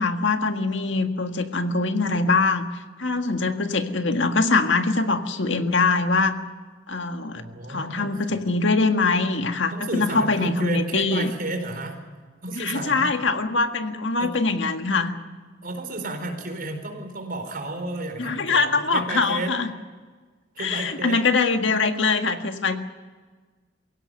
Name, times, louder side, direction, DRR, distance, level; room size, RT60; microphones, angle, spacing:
voice 1, 0.0-2.6 3.0-6.4 6.9-7.4 7.7-11.3 12.5-15.1 18.2-19.7 20.6-22.8, left 3 dB, 70° left, 7 dB, 1.8 m, -23 dB
voice 2, 7.3-8.4 9.7-12.0 12.4-13.1 14.2-14.3 15.6-19.5 20.5-21.2, right 2 dB, 50° right, 5 dB, 4.5 m, -32 dB
23.0 x 17.0 x 9.3 m, 1.4 s
head